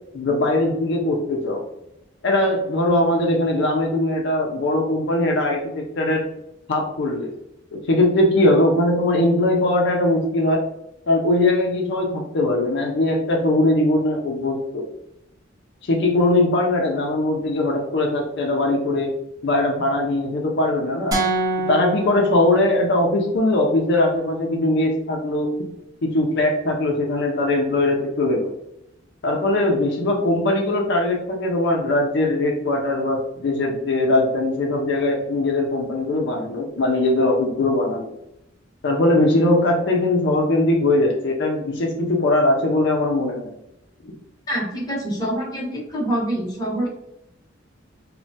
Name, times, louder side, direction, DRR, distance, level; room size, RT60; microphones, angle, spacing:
voice 1, 0.1-1.6 2.2-6.2 6.7-7.3 7.7-10.6 11.1-14.9 15.8-19.1 19.4-21.2 21.7-25.5 26.0-28.5 29.2-38.1 38.8-43.5, left 1 dB, 60° left, 0 dB, 0.5 m, -20 dB
sound 1, 21.1-23.2, right 2 dB, 20° right, 0.6 m, -26 dB
voice 2, 44.5-46.9, right 1 dB, 20° left, -3 dB, 0.9 m, -25 dB
3.1 x 2.1 x 2.6 m, 0.83 s
head